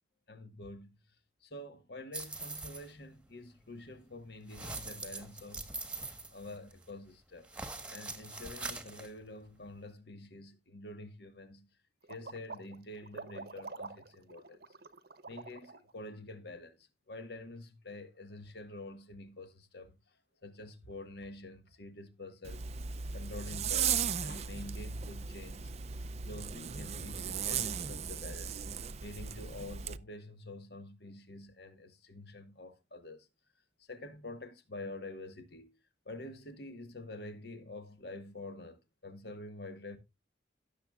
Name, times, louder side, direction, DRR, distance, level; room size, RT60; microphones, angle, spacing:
voice 1, 0.3-0.9 1.4-5.7 6.3-7.5 7.9-11.7 12.1-14.6 15.3-16.8 17.1-20.0 20.4-22.6 23.1-23.9 24.2-25.7 26.2-28.6 29.0-33.3 33.9-35.7 36.0-40.0, left 2 dB, 60° left, 1.5 m, -47 dB
sound 1, 2.1-2.9 4.5-6.9 7.4-9.1, right 3 dB, 5° right, 1.3 m, -43 dB
sound 2, 12.0-15.9, right 3 dB, 55° right, 0.9 m, -46 dB
Zipper (clothing), 22.4-30.0, right 7 dB, 35° right, 0.4 m, -36 dB
17.5 x 7.0 x 2.4 m
head